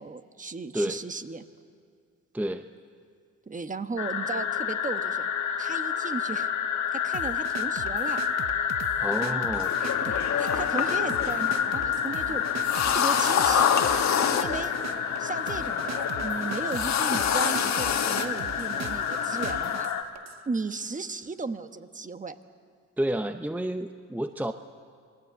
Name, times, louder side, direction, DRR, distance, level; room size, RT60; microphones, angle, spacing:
voice 1, 0.0-1.4 3.5-5.3 5.6-6.5 6.9-8.2 9.3-9.4 9.8-13.8 14.3-14.8 15.2-19.9 20.5-22.4, right 4 dB, 25° right, 9 dB, 1.2 m, -36 dB
voice 2, 2.3-2.7 9.0-9.7 23.0-24.5, right 1 dB, 5° right, 7 dB, 0.8 m, -30 dB
sound 1, 4.0-20.0, left 8 dB, 85° left, 1.9 m, -29 dB
sound 2, 7.1-20.4, right 9 dB, 60° right, 0.9 m, -41 dB
sound 3, 9.5-19.7, left 8 dB, 65° left, 1.7 m, -28 dB
27.5 x 20.0 x 8.1 m, 2.2 s
cardioid pair, 90°, 30 cm